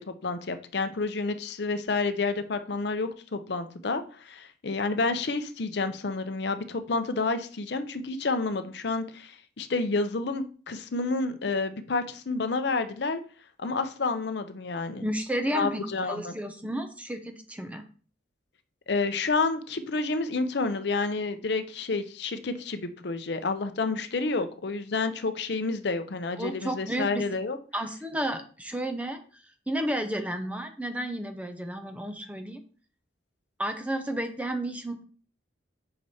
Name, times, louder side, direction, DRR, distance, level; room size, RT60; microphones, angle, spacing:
voice 1, 0.0-13.2 13.6-15.1 15.5-16.3 18.9-27.6, left 3 dB, 60° left, 9 dB, 0.6 m, -29 dB
voice 2, 15.0-17.8 26.4-27.2 27.7-32.6 33.6-35.0, right 1 dB, 5° right, 6 dB, 0.6 m, -32 dB
5.8 x 4.9 x 4.1 m, 0.40 s
head